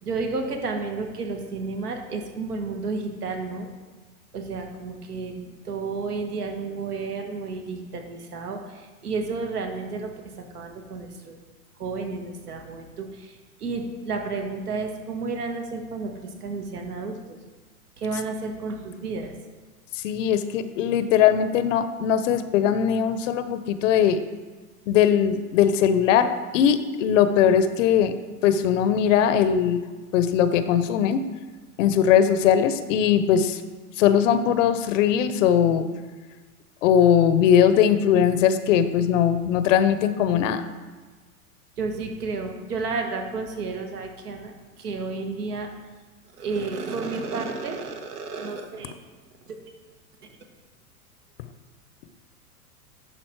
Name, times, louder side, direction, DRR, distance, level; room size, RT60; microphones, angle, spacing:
voice 1, 0.0-3.7 4.3-11.4 11.8-16.1 16.4-17.4 18.0-19.3 41.8-45.7 46.4-48.9 49.5-49.6, right 4 dB, 85° right, 4 dB, 1.5 m, -31 dB
voice 2, 19.9-24.2 24.9-28.1 28.4-29.8 30.1-31.2 31.8-33.6 34.0-35.9 36.8-40.6, left 9 dB, 55° left, 11 dB, 0.6 m, -20 dB
11.0 x 4.1 x 4.5 m, 1.3 s
hypercardioid pair, 115°, 45 cm